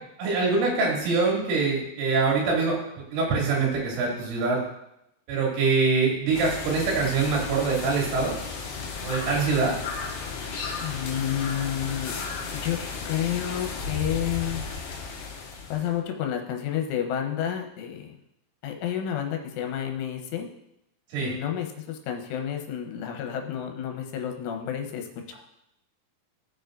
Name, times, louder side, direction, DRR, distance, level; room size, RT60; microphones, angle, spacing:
voice 1, 0.2-4.6 5.3-8.4 9.0-9.7 21.1-21.3, right 4 dB, 80° right, -3 dB, 5.1 m, -24 dB
sound 1, 6.3-16.0, left 4 dB, 65° left, 3.0 m, -34 dB
voice 2, 10.8-12.1 12.5-12.8 13.1-14.6 15.7-18.2 18.6-20.5 21.2-25.3, left 10 dB, 80° left, 3 dB, 3.5 m, -30 dB
17.0 x 7.0 x 2.6 m, 0.82 s
omnidirectional pair, 5.6 m